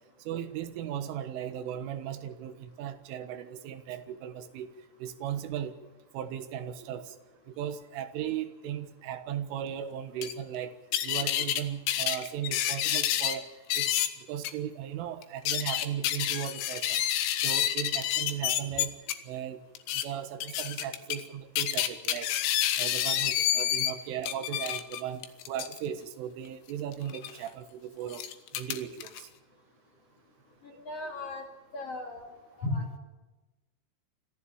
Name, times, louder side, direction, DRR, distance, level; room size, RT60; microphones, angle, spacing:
voice 1, 0.3-4.7 5.0-5.8 6.1-7.2 7.5-10.8 11.0-13.5 13.8-13.9 14.3-17.0 17.4-18.9 19.2-19.6 19.9-22.3 22.8-28.2 28.5-29.3, right 10 dB, 85° right, 9 dB, 3.9 m, -37 dB
sound 1, 10.2-10.3 10.9-11.6 11.9-13.4 13.7-14.1 14.4-14.5 15.2-19.1 19.8-20.1 20.4-21.2 21.6-23.9 24.2-25.8 27.1-27.3 28.1-29.2, left 11 dB, 75° left, 3.6 m, -29 dB
voice 2, 30.6-31.4 31.7-33.0, left 2 dB, 40° left, 2 dB, 2.8 m, -36 dB
26.0 x 14.5 x 7.1 m, 1.1 s
omnidirectional pair, 5.5 m